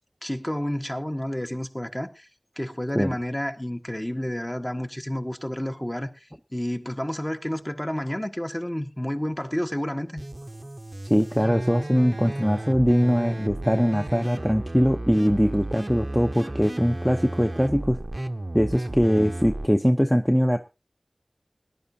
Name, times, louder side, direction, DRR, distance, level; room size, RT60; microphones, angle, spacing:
voice 1, 0.2-2.3 2.6-10.2, equal, 20° left, 1.3 m, -30 dB
sound 1, 10.2-19.7, right 1 dB, 45° right, 0.7 m, -33 dB
voice 2, 11.0-18.0 18.5-20.6, equal, ahead, 0.7 m, -22 dB
19.5 x 11.0 x 2.8 m
wide cardioid pair, 45°, 0 cm